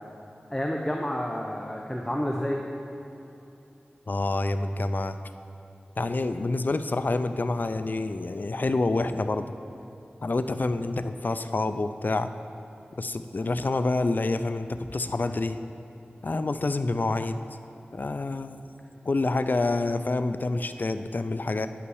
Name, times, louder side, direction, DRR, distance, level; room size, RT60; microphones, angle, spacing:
voice 1, 0.5-2.6, equal, 10° left, 0 dB, 0.7 m, -29 dB
voice 2, 4.1-5.2 6.0-9.5 10.2-12.3 13.0-15.6 16.2-17.4 17.9-18.6 19.1-21.7, left 2 dB, 55° left, 10 dB, 0.4 m, -27 dB
9.4 x 5.7 x 6.3 m, 3.0 s
wide cardioid pair, 55°, 4 cm